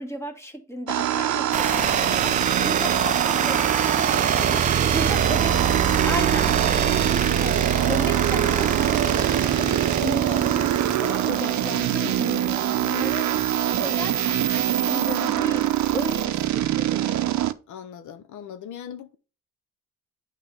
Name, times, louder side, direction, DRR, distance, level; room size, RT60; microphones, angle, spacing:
voice 1, 0.0-5.7 6.0-6.6 6.8-13.4 13.7-17.1, equal, 10° left, 1.5 m, -34 dB
sound 1, 0.9-17.5, right 12 dB, 60° right, 0.6 m, -24 dB
sound 2, 1.5-16.2, right 7 dB, 25° right, 0.4 m, -26 dB
voice 2, 17.7-19.2, left 8 dB, 70° left, 0.7 m, -39 dB
8.8 x 3.3 x 5.2 m
cardioid pair, 110°, 32 cm